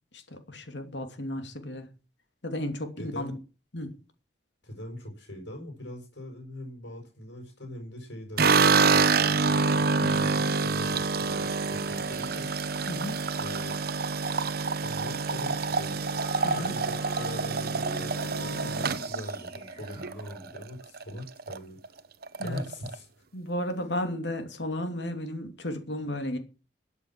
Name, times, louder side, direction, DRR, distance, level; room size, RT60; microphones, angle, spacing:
voice 1, 0.1-1.9 2.4-3.3 3.7-4.0 10.0-10.3 12.9-13.2 16.4-16.8 22.4-22.7 23.3-26.4, left 1 dB, 70° left, 2.8 m, -34 dB
voice 2, 3.0-3.4 4.6-12.7 13.4-13.8 14.8-16.1 16.5-22.0 22.4-23.2, left 1 dB, 90° left, 6.0 m, -42 dB
sound 1, 8.4-20.6 21.0-21.6 21.8-21.9 22.2-22.9, right 4 dB, 60° right, 0.9 m, -27 dB
sound 2, 10.7-20.6, right 6 dB, 15° right, 4.8 m, -53 dB
sound 3, 15.9-20.3, left 1 dB, 50° left, 6.4 m, -44 dB
13.5 x 8.2 x 7.5 m
head